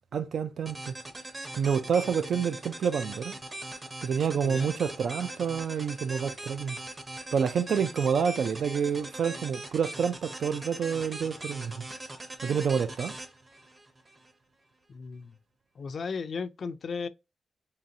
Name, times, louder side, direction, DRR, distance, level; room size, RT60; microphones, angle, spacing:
voice 1, 0.1-0.9 1.6-3.3 4.0-6.8 7.3-11.8 12.4-13.1, right 7 dB, 75° right, 0.4 m, -28 dB
sound 1, 0.7-14.3, right 1 dB, 25° right, 0.6 m, -41 dB
voice 2, 14.9-15.4 15.8-17.1, left 5 dB, 50° left, 0.3 m, -35 dB
3.8 x 3.1 x 2.7 m
wide cardioid pair, 155°, 0 cm